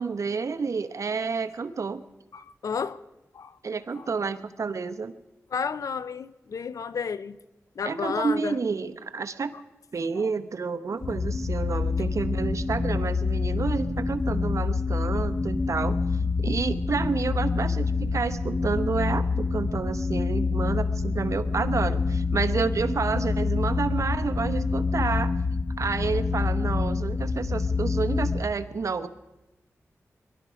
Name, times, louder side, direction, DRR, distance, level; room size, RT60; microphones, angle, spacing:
voice 1, 0.0-2.0 3.6-5.1 7.8-9.5 9.9-16.0 16.4-25.4 25.8-29.1, right 5 dB, 65° right, 12 dB, 0.9 m, -29 dB
voice 2, 2.3-3.0 3.3-3.6 4.0-4.1 5.5-7.4 7.8-8.6, left 6 dB, 75° left, 15 dB, 0.6 m, -31 dB
sound 1, 11.0-28.4, left 4 dB, 45° left, 1.3 m, -27 dB
22.5 x 12.0 x 5.1 m, 1.0 s
cardioid pair, 55°, 6 cm